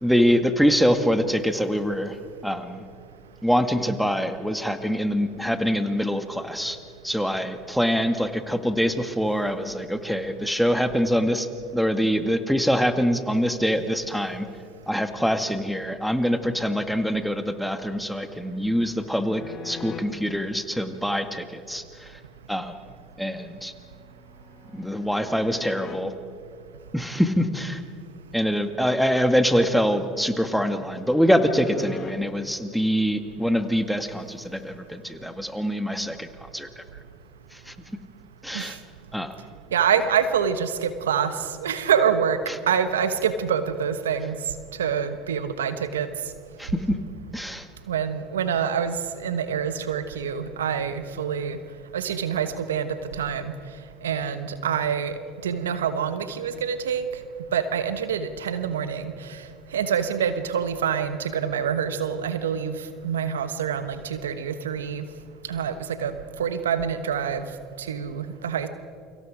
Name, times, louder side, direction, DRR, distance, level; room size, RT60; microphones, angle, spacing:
voice 1, 0.0-2.2 2.4-2.8 3.4-6.8 7.0-11.5 11.7-14.5 14.9-22.1 22.5-22.7 23.2-23.7 24.7-26.1 26.9-27.8 28.3-36.3 36.5-36.8 37.5-37.7 38.4-38.8 39.1-39.3 46.6-47.0 47.3-47.7, equal, ahead, 8 dB, 1.9 m, -24 dB
sound 1, 19.3-20.0 23.4-26.0 29.1-32.1, left 6 dB, 40° left, 2.7 m, -43 dB
voice 2, 39.7-41.3 41.6-42.4 42.7-44.4 44.8-46.1 47.9-51.6 51.9-53.5 54.0-55.1 55.4-57.1 57.5-59.4 59.7-62.8 63.0-65.1 65.5-67.5 67.8-68.7, right 7 dB, 90° right, 11 dB, 1.2 m, -26 dB
29.5 x 24.5 x 5.1 m, 2.3 s
hypercardioid pair, 75°, 0 cm